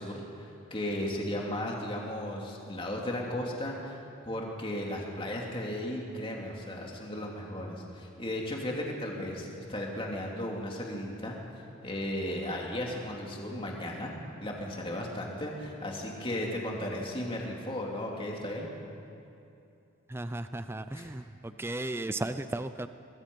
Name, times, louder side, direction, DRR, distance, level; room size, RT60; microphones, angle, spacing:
voice 1, 0.0-4.0 4.2-11.4 11.8-18.7 20.9-21.1, left 1 dB, 25° left, -1 dB, 2.8 m, -35 dB
voice 2, 20.1-21.2 21.6-22.9, right 2 dB, 10° right, 11 dB, 0.4 m, -35 dB
24.0 x 21.0 x 5.4 m, 2.7 s
head